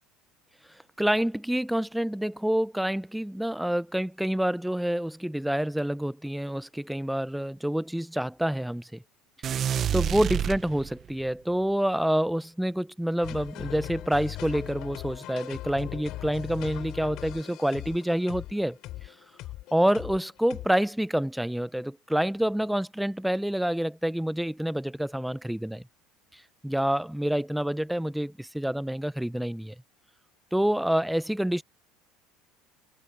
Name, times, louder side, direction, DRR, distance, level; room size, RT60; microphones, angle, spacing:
voice 1, 1.0-9.0 9.9-18.8 19.7-25.8 26.3-29.7 30.5-31.6, equal, ahead, 0.5 m, -27 dB
sound 1, 9.4-11.2, right 9 dB, 40° right, 0.8 m, -28 dB
sound 2, 13.2-20.7, left 16 dB, 60° left, 3.8 m, -40 dB
supercardioid pair, 110°, 0 cm